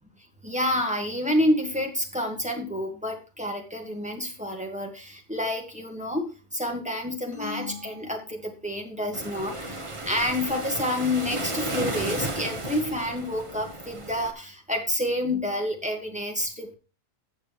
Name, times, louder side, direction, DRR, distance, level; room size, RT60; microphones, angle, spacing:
voice 1, 0.4-16.7, left 1 dB, 5° right, 1 dB, 1.9 m, -29 dB
sound 1, 7.3-9.0, left 5 dB, 25° left, 6.6 m, -40 dB
Waves surf, 9.1-14.3, right 1 dB, 25° right, 1.1 m, -33 dB
14.0 x 7.6 x 3.2 m, 0.34 s
omnidirectional pair, 1.4 m